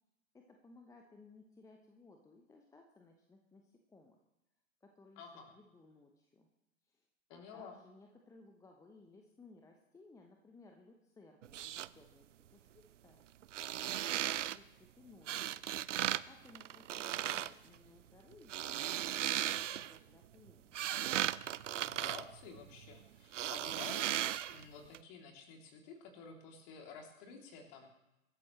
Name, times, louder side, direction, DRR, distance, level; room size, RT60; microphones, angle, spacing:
voice 1, 0.3-4.2 4.8-5.2 5.5-6.5 6.8-7.0 7.3-13.2 13.9-15.7 16.3-20.7, left 3 dB, 5° left, 2 dB, 1.0 m, -61 dB
voice 2, 5.2-5.5 7.3-7.8 21.8-24.1 24.5-27.9, left 5 dB, 35° left, 2 dB, 3.2 m, -51 dB
sound 1, 11.4-11.9 13.4-14.6 15.3-16.2 16.5-17.5 18.3-20.0 20.5-22.9 23.3-24.6 24.9-25.0, right 11 dB, 60° right, 0.5 m, -36 dB
24.0 x 13.0 x 3.2 m, 0.90 s
figure-of-eight pair, 105°, 42 cm